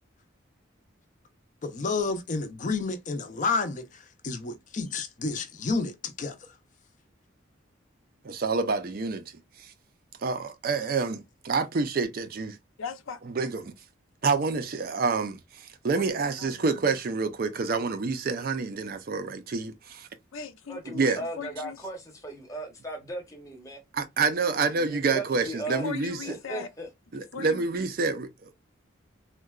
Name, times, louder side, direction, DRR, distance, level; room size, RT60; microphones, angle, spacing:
voice 1, 1.6-6.3, left 4 dB, 40° left, 0.5 m, -30 dB
voice 2, 8.2-9.7 10.2-12.6 13.2-13.7 14.2-20.1 20.9-21.2 23.9-26.4 27.1-28.5, right 4 dB, 45° right, 0.4 m, -28 dB
voice 3, 12.8-13.2 16.0-16.6 20.3-21.8 25.8-26.7 27.3-27.6, left 6 dB, 90° left, 0.5 m, -39 dB
voice 4, 20.7-23.8 24.7-25.8 26.2-26.9, right 1 dB, 15° left, 0.8 m, -37 dB
3.7 x 2.2 x 2.3 m
head